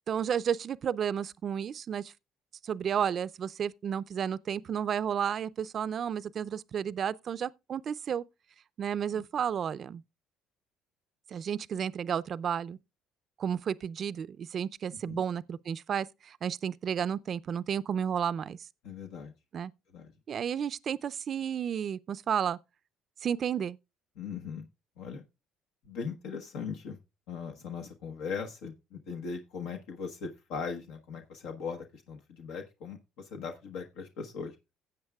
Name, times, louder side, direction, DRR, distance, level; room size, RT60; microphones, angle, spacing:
voice 1, 0.1-2.1 2.6-8.2 8.8-10.0 11.3-12.8 13.4-18.6 19.5-19.7 20.3-22.6 23.2-23.8, right 8 dB, 50° right, 0.4 m, -32 dB
voice 2, 18.8-19.3 19.9-20.1 24.2-24.7 25.0-25.2 25.8-27.0 27.3-33.0 33.3-34.5, left 5 dB, 80° left, 1.1 m, -39 dB
16.0 x 7.9 x 2.3 m
supercardioid pair, 85°, 0 cm